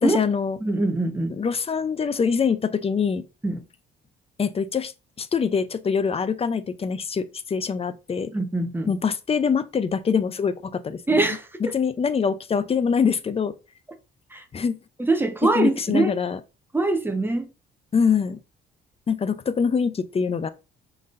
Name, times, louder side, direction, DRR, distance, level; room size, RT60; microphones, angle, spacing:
voice 1, 0.0-0.6 1.4-3.2 4.4-4.9 5.2-8.3 8.9-11.2 11.7-13.5 14.5-14.8 15.5-16.4 17.9-18.4 19.1-20.5, left 6 dB, 30° left, 0.5 m, -24 dB
voice 2, 0.6-1.3 3.4-3.6 8.3-8.9 11.1-11.7 14.3-14.4 15.0-16.1 16.7-17.5, right 2 dB, 10° right, 0.9 m, -23 dB
5.2 x 4.0 x 2.5 m
cardioid pair, 90°, 20 cm